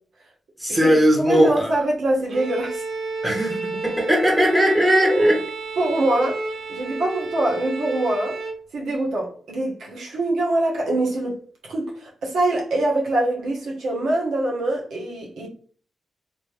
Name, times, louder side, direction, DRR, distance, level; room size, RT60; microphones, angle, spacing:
voice 1, 0.6-1.8 3.2-5.4, equal, 10° right, 1.2 m, -18 dB
voice 2, 1.3-2.8 5.0-5.3 5.8-6.4 6.7-8.4 8.7-11.4 11.6-15.5, right 1 dB, 90° right, 1.1 m, -24 dB
Bowed string instrument, 2.3-8.7, right 3 dB, 60° right, 0.5 m, -32 dB
3.0 x 2.8 x 3.2 m
cardioid pair, 90°, 0 cm